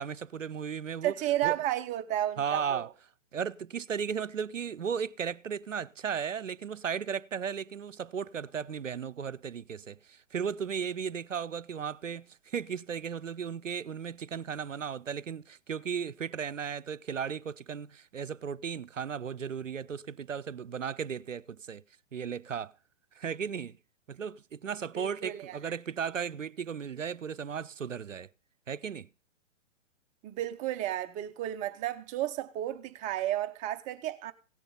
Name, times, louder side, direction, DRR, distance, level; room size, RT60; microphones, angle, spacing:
voice 1, 0.0-1.1 1.4-1.5 2.4-2.9 3.3-21.8 22.1-22.7 23.2-23.8 24.1-28.3 28.7-29.1, right 7 dB, 90° right, 0.6 m, -35 dB
voice 2, 1.0-2.9 24.9-25.6 30.2-34.3, right 13 dB, 20° right, 0.6 m, -32 dB
16.5 x 6.8 x 5.3 m
figure-of-eight pair, 110°, 37 cm